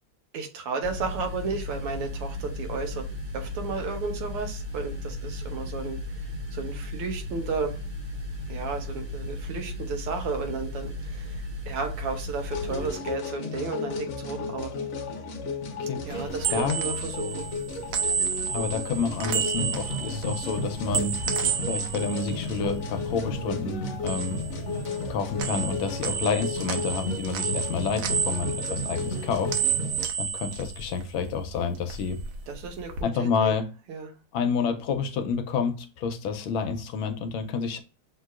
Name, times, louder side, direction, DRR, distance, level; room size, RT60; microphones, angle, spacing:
voice 1, 0.3-3.1 3.3-6.2 6.5-7.8 8.5-14.7 16.1-17.5 32.5-33.5 33.9-34.1, right 4 dB, 90° right, 1.9 m, -33 dB
sound 1, 0.8-12.9, left 1 dB, 45° right, 1.4 m, -35 dB
sound 2, 12.5-30.1, left 3 dB, 55° left, 0.9 m, -33 dB
voice 2, 15.6-16.8 18.5-21.2 21.7-24.4 25.1-29.5 30.2-32.2 33.0-33.7 34.3-37.8, left 5 dB, 75° left, 1.3 m, -29 dB
sound 3, 16.1-23.4 23.7-25.1 25.4-31.4 31.7-33.0, right 8 dB, 70° right, 1.4 m, -31 dB
6.1 x 2.9 x 2.3 m
omnidirectional pair, 2.4 m